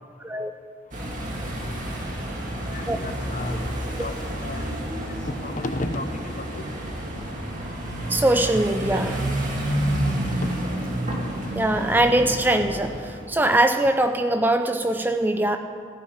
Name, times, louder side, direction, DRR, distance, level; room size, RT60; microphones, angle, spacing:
sound 1, 0.9-13.3, right 1 dB, 40° right, 2.0 m, -29 dB
voice 1, 2.7-3.6 4.0-4.1 4.4-4.6 5.2-6.1 6.4-6.7 10.2-10.8 11.1-11.2, left 2 dB, 40° left, 8 dB, 0.8 m, -32 dB
voice 2, 8.1-9.3 11.6-15.6, right 1 dB, 10° right, 7 dB, 0.3 m, -22 dB
15.0 x 5.8 x 9.7 m, 2.4 s
head